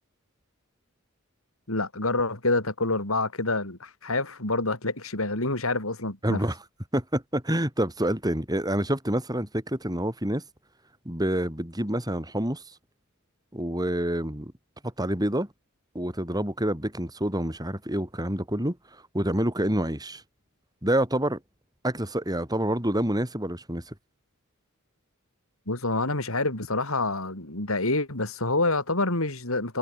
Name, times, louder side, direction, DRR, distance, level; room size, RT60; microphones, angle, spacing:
voice 1, 1.7-6.4 25.7-29.8, left 2 dB, 75° left, 5.1 m, -27 dB
voice 2, 6.2-6.6 6.9-10.4 11.1-12.6 13.5-14.5 14.8-15.5 16.0-18.8 19.1-20.2 20.8-21.4 21.8-23.9, right 1 dB, 20° right, 6.9 m, -27 dB
head